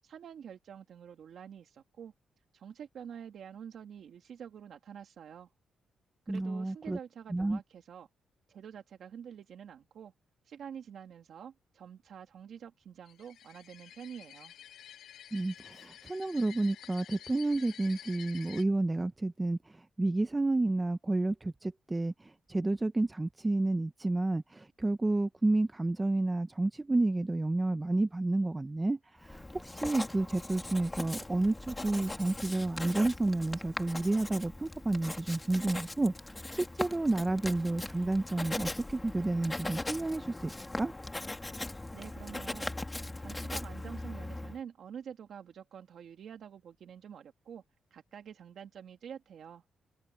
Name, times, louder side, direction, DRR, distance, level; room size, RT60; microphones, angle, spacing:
voice 1, 0.0-2.1 2.5-5.5 6.3-8.1 8.5-10.1 10.5-14.5 41.9-42.7 43.2-47.6 47.9-49.6, right 8 dB, 55° right, 2.3 m, -47 dB
voice 2, 6.3-7.0 7.3-7.6 15.3-40.9, right 2 dB, 10° right, 0.6 m, -30 dB
sound 1, 13.1-18.6, left 11 dB, 75° left, 5.5 m, -51 dB
Writing, 29.2-44.6, left 2 dB, 10° left, 1.6 m, -40 dB
wide cardioid pair, 180°, 0 cm